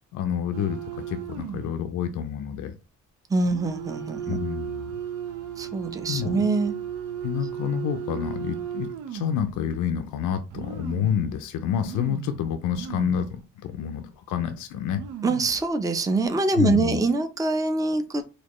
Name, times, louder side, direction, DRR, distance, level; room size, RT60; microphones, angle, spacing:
voice 1, 0.1-2.7 4.3-4.9 6.1-6.4 7.2-15.0 16.6-17.0, left 9 dB, 80° left, 0.5 m, -28 dB
sound 1, 0.5-1.8 2.2-2.3 3.4-9.5 10.1-10.2 10.5-11.4 11.8-13.4 13.7-13.8 14.5-14.6 14.8-15.6 16.1-16.4, right 9 dB, 85° right, 0.6 m, -35 dB
voice 2, 3.3-4.4 5.6-6.7 15.2-18.2, right 3 dB, 10° right, 0.5 m, -24 dB
4.2 x 2.3 x 3.0 m
cardioid pair, 90°, 30 cm